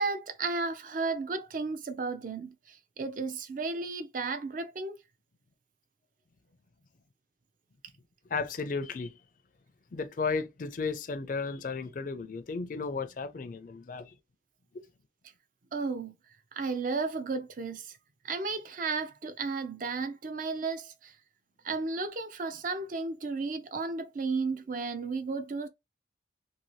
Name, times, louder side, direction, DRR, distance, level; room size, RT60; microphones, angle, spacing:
voice 1, 0.0-5.0 15.7-16.1 16.5-18.0 18.2-21.1 21.6-25.7, right 4 dB, 45° right, 0.5 m, -33 dB
voice 2, 8.3-9.2 9.9-14.2, left 4 dB, 45° left, 0.4 m, -34 dB
2.7 x 2.6 x 3.1 m
head